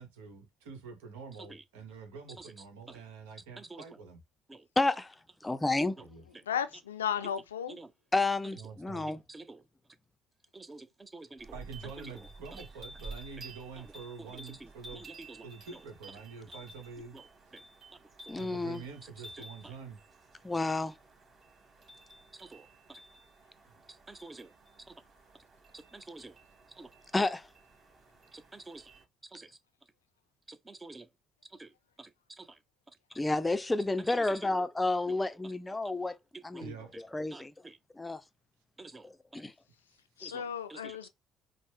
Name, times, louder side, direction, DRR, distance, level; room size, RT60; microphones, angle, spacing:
voice 1, 0.0-4.2 6.0-6.2 8.5-9.1 11.5-15.1 15.4-17.2 18.3-20.0 36.6-37.0 39.9-40.0, right 5 dB, 80° right, 1.0 m, -46 dB
voice 2, 4.8-5.1 5.4-5.9 8.1-9.2 18.3-18.8 20.4-20.9 27.1-27.5 33.1-36.2 36.4-37.5 38.0-38.2 39.0-39.5, left 2 dB, 15° left, 0.4 m, -30 dB
voice 3, 6.5-7.8 40.2-41.1, left 8 dB, 90° left, 0.4 m, -34 dB
voice 4, 9.0-9.6 10.5-12.6 13.8-13.9 14.2-15.5 15.7-15.8 16.5-16.6 17.1-17.2 17.5-17.6 18.2-18.4 19.0-19.7 22.3-23.0 23.9-24.5 24.9-25.0 25.7-26.3 26.8-26.9 28.3-28.9 29.2-29.5 30.5-31.1 31.5-32.6 32.9-33.0 34.0-34.5 35.1-35.5 36.3-37.0 37.3-37.8 38.8-39.4 40.2-41.0, right 2 dB, 25° right, 0.7 m, -50 dB
sound 1, 11.4-29.0, right 2 dB, 45° right, 2.4 m, -52 dB
5.2 x 2.1 x 3.3 m
hypercardioid pair, 50°, 0 cm